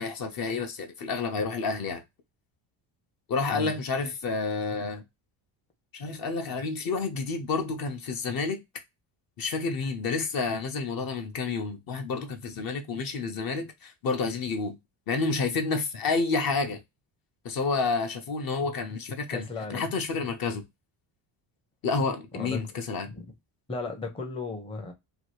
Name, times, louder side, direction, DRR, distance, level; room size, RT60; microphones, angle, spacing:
voice 1, 0.0-2.0 3.3-5.0 5.9-8.6 9.4-14.8 15.1-16.8 17.4-19.4 19.7-20.6 21.8-23.1, left 4 dB, 50° left, 0.8 m, -29 dB
voice 2, 3.5-3.8 19.3-19.9 22.3-22.6 23.1-23.3 23.7-24.9, left 3 dB, 10° left, 0.6 m, -35 dB
2.9 x 2.3 x 3.0 m
cardioid pair, 115°, 47 cm